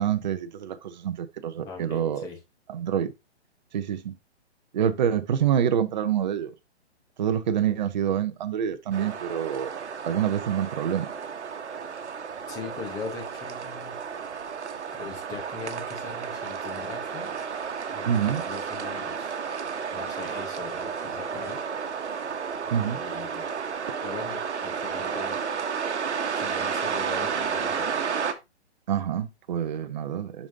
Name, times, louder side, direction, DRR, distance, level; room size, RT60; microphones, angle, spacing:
voice 1, 0.0-2.3 2.7-3.1 3.7-4.2 4.7-6.5 7.2-11.1 18.0-18.4 22.7-23.0 28.9-30.5, right 9 dB, 40° right, 0.6 m, -27 dB
voice 2, 1.6-2.4 12.5-14.0 15.0-17.4 17.9-19.4 19.9-21.6 22.6-23.4 24.0-25.4 26.3-27.9, left 4 dB, 10° left, 0.8 m, -40 dB
sound 1, 8.9-28.3, right 6 dB, 80° right, 1.1 m, -32 dB
7.0 x 5.2 x 2.6 m
hypercardioid pair, 155°, 34 cm